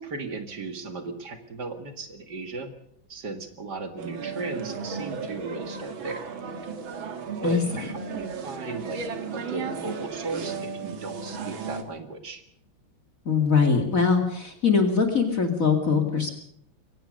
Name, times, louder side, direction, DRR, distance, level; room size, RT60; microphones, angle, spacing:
voice 1, 0.0-2.7 3.1-6.2 7.4-9.0 9.3-12.4, right 3 dB, 55° right, 7 dB, 2.6 m, -36 dB
sound 1, 4.0-11.8, right 5 dB, 80° right, 2.6 m, -35 dB
voice 2, 7.4-7.9 13.3-16.4, left 5 dB, 40° left, 4 dB, 2.6 m, -22 dB
23.5 x 17.5 x 6.5 m, 0.72 s
omnidirectional pair, 2.2 m